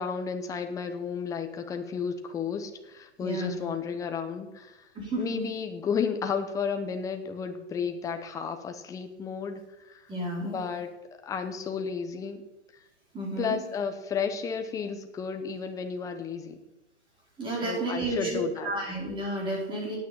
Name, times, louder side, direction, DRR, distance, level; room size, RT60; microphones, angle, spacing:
voice 1, 0.0-4.8 5.2-9.6 9.9-10.0 10.4-10.9 11.2-12.4 13.4-16.6 17.6-18.7, left 6 dB, 10° left, 6 dB, 0.9 m, -32 dB
voice 2, 3.2-3.6 4.9-5.5 10.1-10.6 13.1-13.6 17.4-20.0, right 1 dB, 15° right, -3 dB, 4.5 m, -31 dB
9.0 x 8.9 x 8.8 m, 0.97 s
hypercardioid pair, 155°, 34 cm